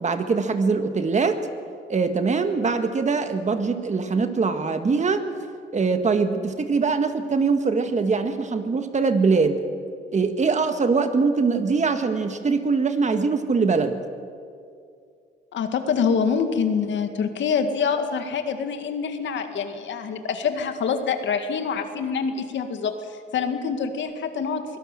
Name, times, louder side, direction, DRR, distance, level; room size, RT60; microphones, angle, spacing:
voice 1, 0.0-1.4 1.9-5.2 5.7-9.6 10.1-14.0, right 4 dB, 35° right, 8 dB, 1.8 m, -22 dB
voice 2, 15.5-22.9 23.3-24.8, left 6 dB, 70° left, 7 dB, 2.1 m, -25 dB
23.5 x 17.0 x 7.6 m, 2.3 s
cardioid pair, 90°, 20 cm